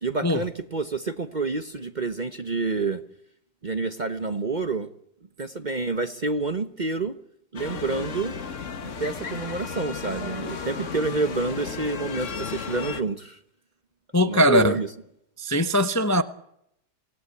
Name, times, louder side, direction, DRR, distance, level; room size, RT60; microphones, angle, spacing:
voice 1, 0.0-3.0 3.6-4.9 5.4-7.1 7.5-8.3 8.8-13.4 14.2-14.9, right 3 dB, 35° right, 0.9 m, -28 dB
sound 1, 7.6-13.0, left 6 dB, 50° left, 1.6 m, -34 dB
voice 2, 14.1-14.8 15.4-16.2, equal, 15° left, 0.7 m, -20 dB
25.5 x 17.5 x 8.3 m
omnidirectional pair, 1.8 m